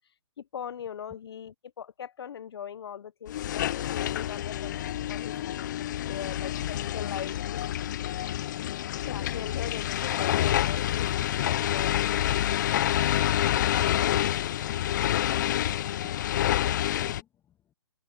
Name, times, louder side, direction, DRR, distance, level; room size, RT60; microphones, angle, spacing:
voice 1, 0.4-4.8 5.1-5.4 6.0-7.7 9.1-13.7, left 8 dB, 60° left, 1.1 m, -40 dB
sound 1, 3.3-17.2, left 12 dB, 40° left, 0.8 m, -28 dB
voice 2, 14.6-14.9 15.2-17.7, left 10 dB, 15° left, 2.0 m, -55 dB
hypercardioid pair, 145°, 15 cm